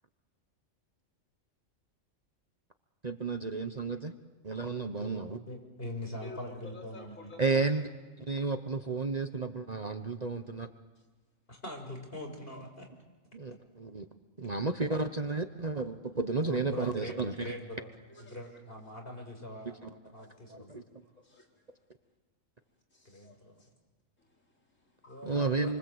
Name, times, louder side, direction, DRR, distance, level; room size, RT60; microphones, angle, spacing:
voice 1, 3.0-4.1 4.4-5.4 7.4-7.8 8.3-10.7 13.3-14.0 14.4-17.5 19.8-19.9 20.5-20.8 25.2-25.8, right 3 dB, 35° right, 7 dB, 1.1 m, -32 dB
voice 2, 5.0-7.4 11.5-12.9 16.4-17.9 18.2-19.8 20.1-20.8 23.0-23.6 25.1-25.8, left 1 dB, 45° left, 3 dB, 5.9 m, -42 dB
voice 3, 6.2-7.7 18.1-18.6 20.2-20.4 21.0-21.5 21.7-21.8 22.9-23.7 24.2-25.4, left 2 dB, 70° left, -1 dB, 4.8 m, -52 dB
29.0 x 24.5 x 8.1 m, 1.3 s
omnidirectional pair, 1.4 m